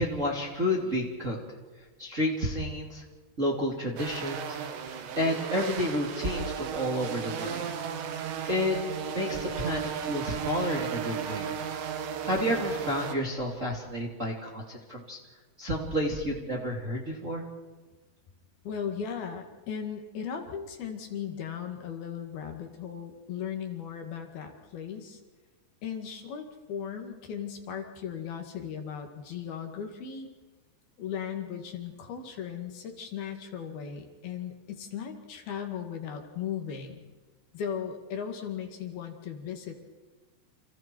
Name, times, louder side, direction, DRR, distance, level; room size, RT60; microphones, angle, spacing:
voice 1, 0.0-1.4 2.0-3.0 3.4-4.9 5.2-7.7 8.5-8.8 9.1-11.5 12.2-15.2 15.6-17.4, equal, 20° right, -1 dB, 2.4 m, -30 dB
sound 1, 4.0-13.2, right 7 dB, 85° right, 3.9 m, -35 dB
voice 2, 18.6-25.2 25.8-30.3 31.0-37.0 37.5-39.7, left 7 dB, 65° left, 4 dB, 3.9 m, -37 dB
29.5 x 28.5 x 4.6 m, 1.3 s
omnidirectional pair, 4.9 m